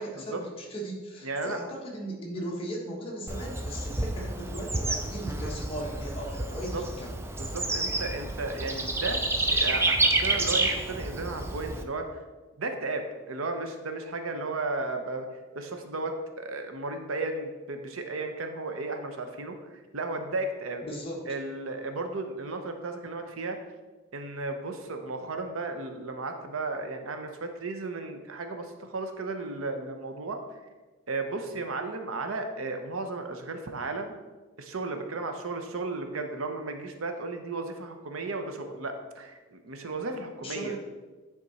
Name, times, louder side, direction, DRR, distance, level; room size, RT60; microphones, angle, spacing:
voice 1, 0.0-7.1 20.8-21.3 40.4-40.7, right 1 dB, 25° left, -2 dB, 1.4 m, -37 dB
voice 2, 1.2-1.6 6.4-6.8 7.4-12.1 12.6-15.3 15.5-20.8 21.2-23.6 24.1-30.4 31.1-34.1 34.6-40.7, right 3 dB, 90° right, 6 dB, 0.8 m, -34 dB
Bird / Insect, 3.3-11.8, right 2 dB, 10° right, 0.4 m, -29 dB
9.4 x 3.6 x 4.1 m, 1.2 s
head